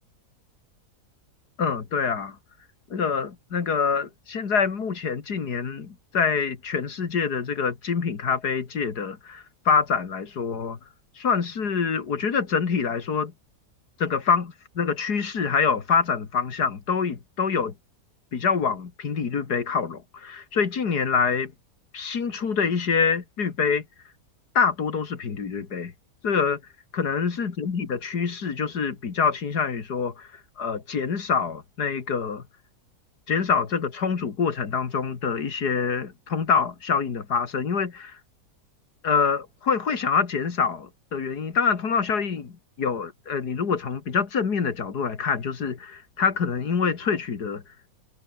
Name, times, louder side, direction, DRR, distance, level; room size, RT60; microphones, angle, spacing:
voice 1, 1.6-2.4 2.9-10.8 11.2-13.3 14.0-17.7 18.3-21.5 21.9-23.9 24.5-25.9 26.2-26.6 27.0-30.3 30.6-32.4 33.3-38.2 39.0-47.6, left 6 dB, 90° left, 2.7 m, -25 dB
omnidirectional pair, 1.6 m